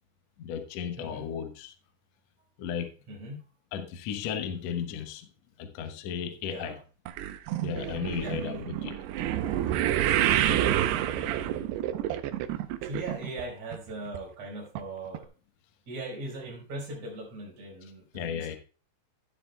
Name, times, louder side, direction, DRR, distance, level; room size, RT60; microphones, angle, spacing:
voice 1, 0.4-1.7 2.6-2.9 3.7-5.3 5.6-6.8 7.6-9.0 18.1-18.6, left 7 dB, 70° left, 1.6 m, -34 dB
voice 2, 1.0-1.3 3.1-3.5 6.4-6.8 8.2-8.4 10.2-10.7 12.8-15.3 15.9-18.6, right 2 dB, 45° right, 5.7 m, -39 dB
sound 1, 7.1-13.4 13.7-14.2 14.8-14.9 15.1-15.2, right 12 dB, 90° right, 2.9 m, -28 dB
13.0 x 11.5 x 2.3 m
omnidirectional pair, 4.6 m